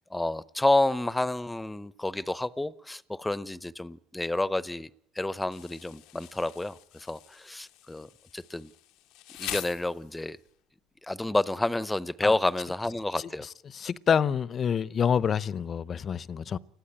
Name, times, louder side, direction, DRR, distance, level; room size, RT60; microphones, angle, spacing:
voice 1, 0.1-4.9 5.1-8.7 9.4-10.4 11.0-13.5, left 2 dB, 10° left, 0.8 m, -29 dB
Insect, 5.5-10.5, left 16 dB, 75° left, 0.8 m, -44 dB
voice 2, 13.7-16.6, left 7 dB, 40° left, 0.7 m, -27 dB
21.0 x 14.0 x 9.9 m
supercardioid pair, 80°, 0 cm